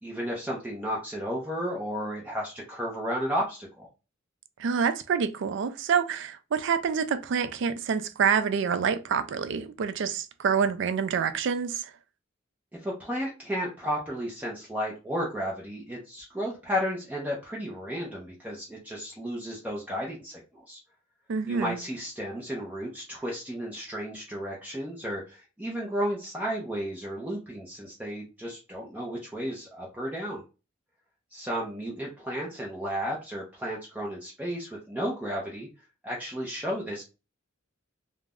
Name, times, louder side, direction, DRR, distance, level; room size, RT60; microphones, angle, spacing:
voice 1, 0.0-3.9 12.7-20.8 21.4-30.4 31.3-35.7 36.0-37.0, equal, 10° right, 0.5 m, -33 dB
voice 2, 4.6-11.9 21.3-21.8, right 6 dB, 65° right, 0.3 m, -27 dB
2.3 x 2.1 x 3.4 m
head